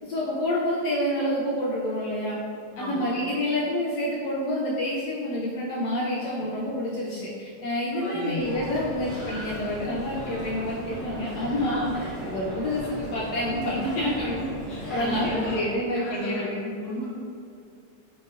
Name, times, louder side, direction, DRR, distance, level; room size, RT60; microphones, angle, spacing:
voice 1, 0.0-2.4 2.8-14.4 14.9-16.7, left 1 dB, 70° left, -5 dB, 1.0 m, -28 dB
voice 2, 2.7-3.1 7.9-8.4 11.7-11.9 14.7-15.6 15.9-16.5 16.7-17.1, left 1 dB, ahead, -11 dB, 1.0 m, -34 dB
sound 1, 8.4-15.6, equal, 30° left, 1.2 m, -36 dB
5.1 x 3.0 x 2.3 m, 2.3 s
omnidirectional pair, 1.9 m